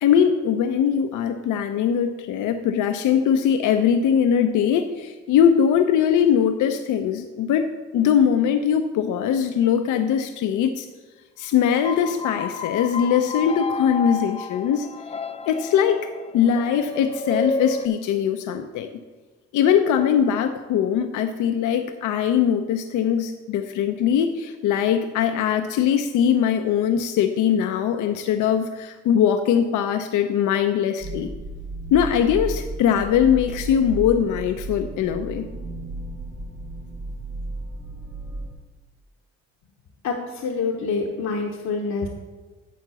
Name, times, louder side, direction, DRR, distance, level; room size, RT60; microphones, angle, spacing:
voice 1, 0.0-7.7 7.9-10.9 11.4-14.9 15.5-18.9 19.5-31.3 31.9-35.5, left 8 dB, 80° left, 7 dB, 0.6 m, -21 dB
sound 1, 11.7-17.9, left 4 dB, 20° left, 0.4 m, -31 dB
sound 2, 31.0-38.5, right 1 dB, 85° right, 1.4 m, -34 dB
voice 2, 40.0-42.1, left 4 dB, 65° left, 1 dB, 0.9 m, -26 dB
9.3 x 3.9 x 6.8 m, 1.3 s
cardioid pair, 90°, 30 cm